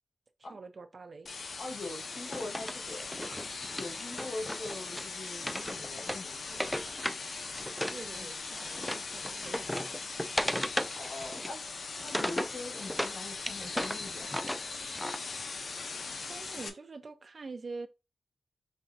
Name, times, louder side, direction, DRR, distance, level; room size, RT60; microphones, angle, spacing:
voice 1, 0.5-1.3 7.9-9.9 16.3-17.9, right 4 dB, 50° right, 0.6 m, -45 dB
sound 1, 1.3-16.7, left 4 dB, 75° left, 0.7 m, -40 dB
voice 2, 1.6-3.2 3.8-6.6 8.2-8.3 10.9-11.6 12.0-14.5, left 2 dB, 90° left, 1.4 m, -43 dB
Wood, 2.0-8.0 8.3-13.2 13.5-15.2, equal, 5° left, 0.4 m, -37 dB
5.4 x 3.4 x 2.6 m
wide cardioid pair, 105°, 0 cm